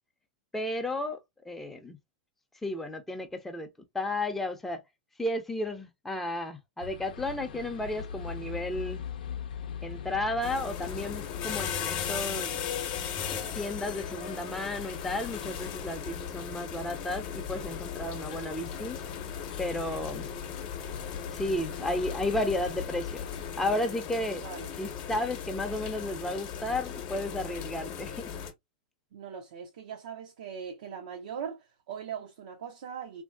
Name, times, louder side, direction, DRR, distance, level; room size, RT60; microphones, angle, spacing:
voice 1, 0.5-1.2 1.4-2.0 2.6-3.7 3.9-4.8 5.2-9.0 9.8-12.6 13.3-19.0 19.6-20.3 21.3-23.3 23.6-24.4 24.8-28.1, left 1 dB, 5° left, 0.5 m, -33 dB
sound 1, 6.8-23.5, left 7 dB, 85° left, 0.5 m, -42 dB
sound 2, 10.4-28.5, left 8 dB, 40° left, 0.8 m, -38 dB
voice 2, 29.1-33.2, right 7 dB, 70° right, 0.6 m, -40 dB
3.0 x 2.6 x 2.2 m
supercardioid pair, 145°, 4 cm